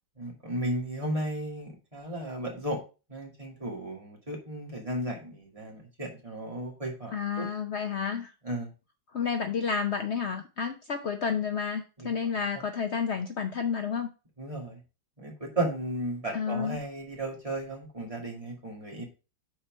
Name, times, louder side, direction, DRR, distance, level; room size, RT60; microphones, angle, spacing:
voice 1, 0.2-2.8 3.1-7.5 8.4-8.7 12.0-12.4 14.4-14.8 15.2-19.0, right 1 dB, 15° right, -1 dB, 2.2 m, -34 dB
voice 2, 7.1-8.3 9.1-14.1 16.3-16.8, left 6 dB, 80° left, 6 dB, 0.6 m, -30 dB
6.4 x 4.4 x 5.9 m, 0.32 s
omnidirectional pair, 2.1 m